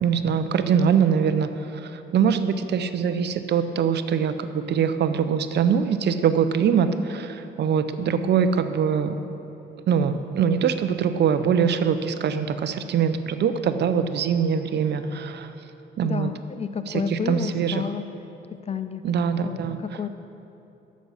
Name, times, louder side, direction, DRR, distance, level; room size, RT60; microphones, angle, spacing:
voice 1, 0.0-9.2 9.9-15.5 16.0-16.3 16.9-17.9 19.0-19.8, right 7 dB, 60° right, 10 dB, 0.6 m, -23 dB
sound 1, 7.9-15.3, right 1 dB, 45° left, 2.0 m, -46 dB
voice 2, 16.0-18.1 18.7-19.0 19.4-20.1, left 6 dB, 30° left, 11 dB, 0.5 m, -30 dB
13.5 x 6.3 x 5.5 m, 2.9 s
cardioid pair, 90°, 20 cm